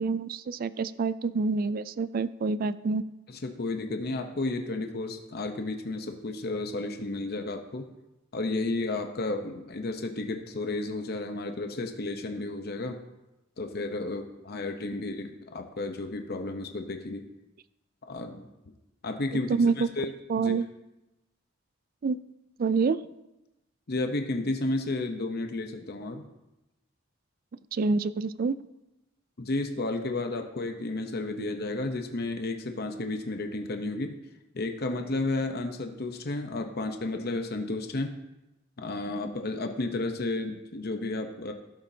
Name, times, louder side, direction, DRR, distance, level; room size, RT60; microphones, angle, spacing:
voice 1, 0.0-3.0 19.5-19.9 20.3-20.7 22.0-22.2 22.6-23.0 27.7-28.6, right 4 dB, 45° right, 16 dB, 0.3 m, -27 dB
voice 2, 3.3-7.9 8.3-13.0 13.6-17.3 18.1-18.5 19.0-20.5 23.9-26.3 29.4-34.2 34.5-38.1 38.8-41.5, left 2 dB, 50° left, 5 dB, 0.8 m, -32 dB
16.5 x 7.2 x 2.7 m, 0.98 s
head